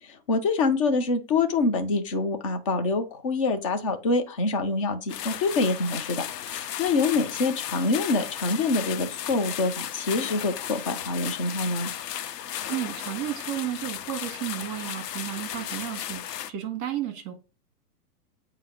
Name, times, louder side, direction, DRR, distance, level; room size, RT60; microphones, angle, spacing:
voice 1, 0.3-11.9, left 3 dB, 25° left, 0.4 m, -26 dB
sound 1, 5.1-16.5, left 11 dB, 85° left, 0.7 m, -35 dB
voice 2, 12.7-17.3, right 12 dB, 35° right, 1.8 m, -33 dB
8.2 x 2.8 x 5.1 m
hypercardioid pair, 155°, 47 cm